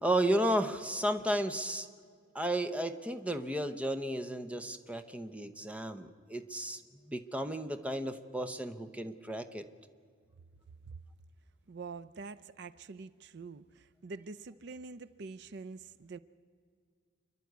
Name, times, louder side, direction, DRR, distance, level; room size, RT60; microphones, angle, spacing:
voice 1, 0.0-1.9 2.3-6.8 7.1-9.7, right 1 dB, 5° right, 9 dB, 0.8 m, -33 dB
voice 2, 11.7-16.2, right 4 dB, 55° right, 14 dB, 0.5 m, -46 dB
28.0 x 11.5 x 9.4 m, 2.2 s
head